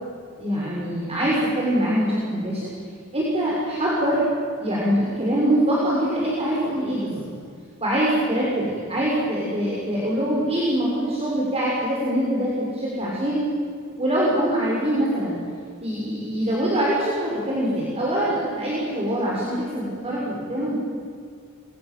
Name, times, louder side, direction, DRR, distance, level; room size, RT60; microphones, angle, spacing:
voice 1, 0.4-2.6 3.1-4.2 4.6-7.2 7.8-13.4 14.0-15.4 15.8-20.8, right 1 dB, 30° right, -5 dB, 6.3 m, -24 dB
29.0 x 24.0 x 7.8 m, 2.2 s
head